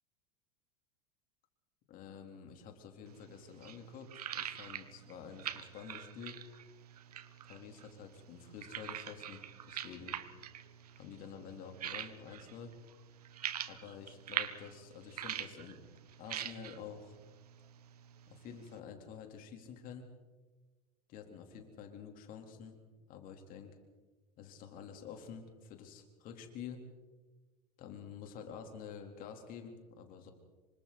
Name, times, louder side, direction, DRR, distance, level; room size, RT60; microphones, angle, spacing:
voice 1, 1.9-6.4 7.4-10.2 11.0-12.7 13.7-15.8 16.2-17.2 18.3-20.1 21.1-22.8 23.1-23.8 24.4-26.8 27.8-30.3, left 7 dB, 45° left, 4 dB, 4.1 m, -49 dB
sound 1, 3.1-18.8, right 10 dB, 75° right, 1.3 m, -45 dB
27.5 x 25.0 x 4.4 m, 1.3 s
hypercardioid pair, 90°, 20 cm